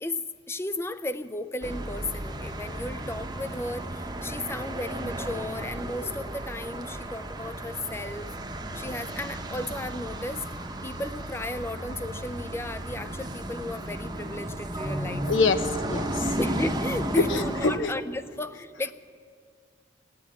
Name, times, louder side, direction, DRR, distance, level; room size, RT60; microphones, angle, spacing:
voice 1, 0.0-8.3 8.7-10.5 10.8-15.3 16.4-18.9, left 2 dB, 15° left, 13 dB, 0.4 m, -34 dB
traffic jupiter, 1.6-17.8, right 1 dB, 20° right, 0.9 m, -34 dB
voice 2, 15.3-16.4 17.3-17.9, left 4 dB, 85° left, 9 dB, 0.9 m, -26 dB
17.5 x 9.5 x 8.4 m, 2.1 s
head